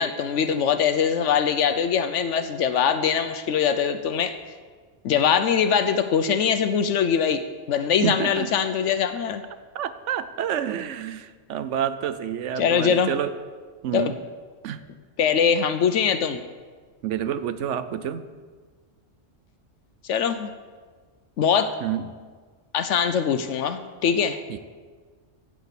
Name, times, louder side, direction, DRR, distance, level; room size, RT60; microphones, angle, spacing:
voice 1, 0.0-4.3 5.0-7.4 7.7-9.4 12.6-13.1 13.9-14.0 15.2-16.4 20.1-20.5 21.4-21.8 22.7-24.4, left 7 dB, 75° left, 10 dB, 1.0 m, -22 dB
voice 2, 8.0-8.5 9.7-13.3 13.8-14.2 14.6-14.8 17.0-18.3 21.8-22.1 24.5-24.6, right 9 dB, 75° right, 13 dB, 1.0 m, -28 dB
14.5 x 5.1 x 8.2 m, 1.5 s
omnidirectional pair, 1.3 m